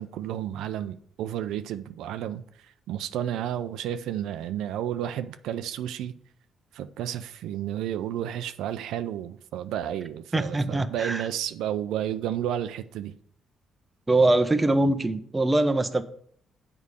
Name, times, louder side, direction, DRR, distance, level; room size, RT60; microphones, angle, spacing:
voice 1, 0.0-6.1 6.7-13.1, right 11 dB, 90° right, 0.5 m, -32 dB
voice 2, 10.3-11.3 14.1-16.0, right 2 dB, 15° right, 0.8 m, -23 dB
7.5 x 4.9 x 6.8 m
cardioid pair, 90°, 0 cm